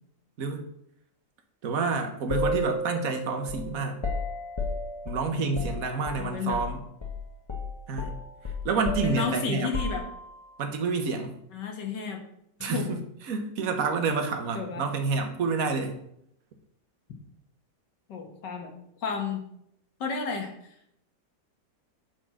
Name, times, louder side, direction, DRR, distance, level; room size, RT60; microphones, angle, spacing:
voice 1, 0.4-0.7 1.6-4.0 5.0-6.8 7.9-8.2 8.6-9.7 10.6-11.4 12.6-16.0, right 4 dB, 50° right, 5 dB, 1.4 m, -29 dB
sound 1, 2.3-6.7 7.0-7.2 7.5-10.5, left 2 dB, 35° left, 0.4 m, -33 dB
voice 2, 5.3-5.6 6.2-6.6 9.0-10.0 11.5-12.2 12.6-12.9 14.6-14.8 18.1-18.7 19.0-19.4 20.0-20.5, left 5 dB, 65° left, 3 dB, 1.9 m, -32 dB
8.8 x 4.5 x 6.0 m, 0.74 s
omnidirectional pair, 2.1 m